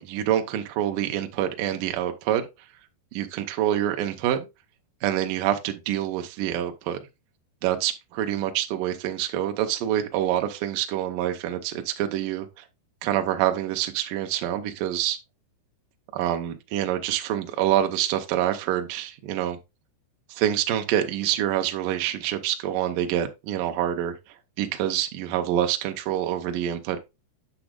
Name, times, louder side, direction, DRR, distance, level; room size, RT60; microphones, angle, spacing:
voice 1, 0.0-2.5 3.1-4.5 5.0-7.0 7.6-12.6 13.0-15.2 16.1-19.6 20.3-24.2 24.6-27.0, right 11 dB, 90° right, 1.8 m, -26 dB
8.4 x 6.1 x 2.3 m
omnidirectional pair, 4.9 m